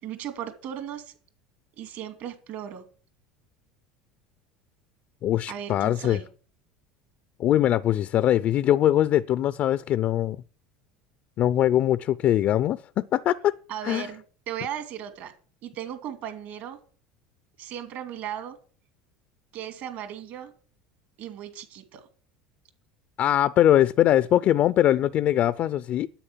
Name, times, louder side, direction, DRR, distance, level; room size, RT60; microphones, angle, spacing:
voice 1, 0.0-1.1 1.8-2.8 5.5-6.3 13.7-15.3 15.6-16.8 17.6-18.6 19.5-20.5 21.2-22.1, right 10 dB, 60° right, 2.5 m, -36 dB
voice 2, 5.2-6.2 7.4-10.4 11.4-13.6 13.8-14.1 23.2-26.1, left 12 dB, 50° left, 0.5 m, -22 dB
10.0 x 8.1 x 7.3 m
hypercardioid pair, 90°, 3 cm